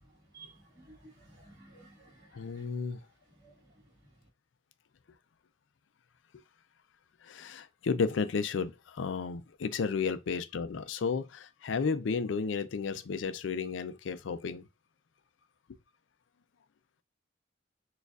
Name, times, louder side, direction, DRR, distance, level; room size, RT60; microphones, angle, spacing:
voice 1, 0.3-2.6 3.4-3.5, right 3 dB, 20° right, 1.6 m, -55 dB
voice 2, 2.3-3.0 7.2-14.6, left 5 dB, 80° left, 0.4 m, -33 dB
6.4 x 2.4 x 2.3 m
head